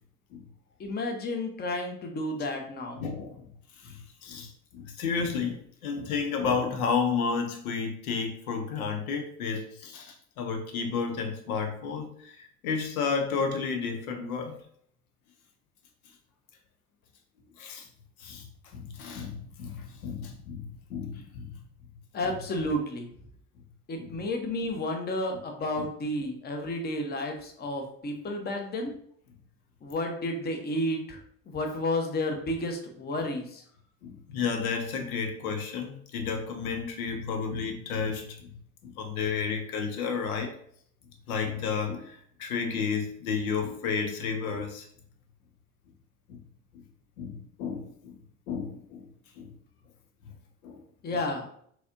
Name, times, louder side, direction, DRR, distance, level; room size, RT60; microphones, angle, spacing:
voice 1, 0.8-3.0 22.1-23.1 23.9-28.9 29.8-31.2 31.5-33.6 51.0-51.5, left 1 dB, 20° left, 4 dB, 0.7 m, -31 dB
voice 2, 3.0-3.3 3.8-14.6 17.6-17.9 18.2-18.5 18.7-21.6 24.0-24.1 25.8-25.9 34.0-38.5 38.8-40.5 41.3-44.9 47.2-48.2 48.5-49.1 49.4-49.5 50.6-50.8, left 5 dB, 70° left, 4 dB, 0.6 m, -32 dB
4.0 x 2.8 x 2.4 m, 0.64 s
figure-of-eight pair, 60°, 44 cm